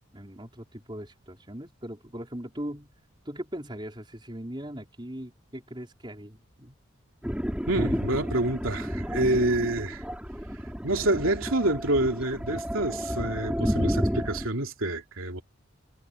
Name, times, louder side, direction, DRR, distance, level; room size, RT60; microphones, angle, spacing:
voice 1, 0.1-2.9 3.2-6.7, equal, 25° right, 4.7 m, -39 dB
Thunder, 7.2-14.5, equal, 5° right, 4.7 m, -31 dB
voice 2, 7.7-10.0 10.8-15.4, right 1 dB, 85° right, 3.1 m, -27 dB
head